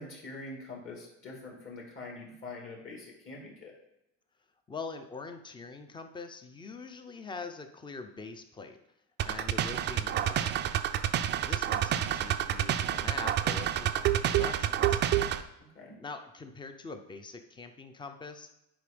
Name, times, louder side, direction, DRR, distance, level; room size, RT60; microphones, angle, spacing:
voice 1, 0.0-3.7 15.8-16.0, left 2 dB, 40° left, -1 dB, 2.2 m, -44 dB
voice 2, 4.7-8.8 9.2-10.6 11.4-15.0 16.0-18.5, left 4 dB, 15° left, 7 dB, 0.6 m, -43 dB
sound 1, 9.2-15.4, right 11 dB, 35° right, 0.4 m, -28 dB
10.5 x 4.7 x 5.2 m, 0.87 s
cardioid pair, 165°, 32 cm